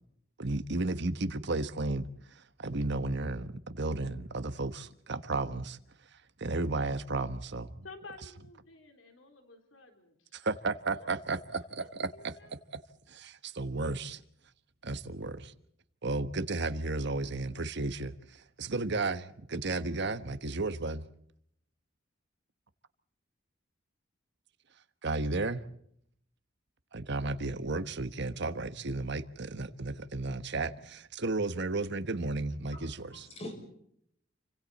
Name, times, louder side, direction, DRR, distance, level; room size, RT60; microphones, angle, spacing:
voice 1, 0.4-5.8 6.1-7.8 10.3-12.4 12.7-12.8 13.1-14.2 14.8-15.5 16.0-21.0 25.0-25.6 26.9-33.3, right 2 dB, 60° right, 1.3 m, -33 dB
voice 2, 7.8-10.4 11.0-11.7 12.1-12.5, left 3 dB, 85° left, 3.7 m, -52 dB
voice 3, 32.7-33.5, left 1 dB, 35° left, 6.5 m, -44 dB
29.0 x 25.5 x 4.2 m
head